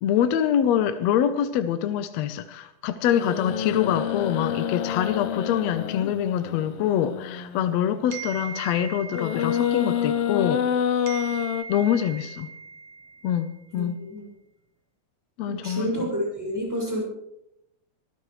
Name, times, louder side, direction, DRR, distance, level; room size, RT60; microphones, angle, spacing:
voice 1, 0.0-10.6 11.7-12.5 13.2-14.0 15.4-16.1, left 9 dB, 70° left, 10 dB, 1.8 m, -25 dB
sound 1, 3.1-7.9 9.1-11.6, left 9 dB, 90° left, 1.3 m, -28 dB
sound 2, 8.1-10.7 11.1-13.6, right 6 dB, 70° right, 2.5 m, -39 dB
voice 2, 13.7-14.2 15.4-17.0, equal, 5° right, -2 dB, 6.0 m, -29 dB
23.5 x 15.0 x 3.2 m, 0.82 s
omnidirectional pair, 3.6 m